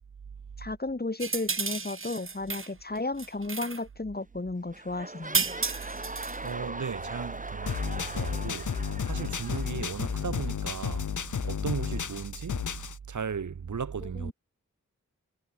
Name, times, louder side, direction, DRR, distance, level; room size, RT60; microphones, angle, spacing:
voice 1, 0.6-5.5 14.0-14.3, left 2 dB, 30° left, 3.2 m, -34 dB
sound 1, 1.2-2.7 3.0-3.8 5.3-6.5, right 4 dB, 40° right, 1.6 m, -32 dB
sound 2, 4.1-4.4 4.7-10.5 11.2-11.3, right 2 dB, 25° right, 4.6 m, -41 dB
voice 2, 6.4-8.7 9.0-11.1 11.4-12.6 13.1-14.3, right 6 dB, 70° right, 1.3 m, -35 dB
sound 3, 7.7-13.0, left 7 dB, 70° left, 1.1 m, -32 dB
wide cardioid pair, 90°, 31 cm